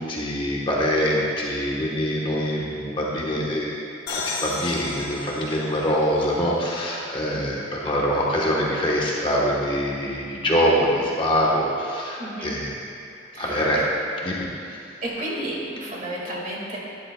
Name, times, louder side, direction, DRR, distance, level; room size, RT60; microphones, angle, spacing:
voice 1, 0.0-3.8 4.1-12.8 13.4-13.8 14.2-14.5, equal, 25° left, -4 dB, 1.1 m, -24 dB
sound 1, 4.1-7.6, left 4 dB, 55° left, 1.1 m, -35 dB
voice 2, 12.2-12.6 13.3-13.7 15.0-16.8, right 1 dB, 40° right, -4 dB, 1.8 m, -31 dB
12.5 x 10.5 x 2.2 m, 2.5 s
head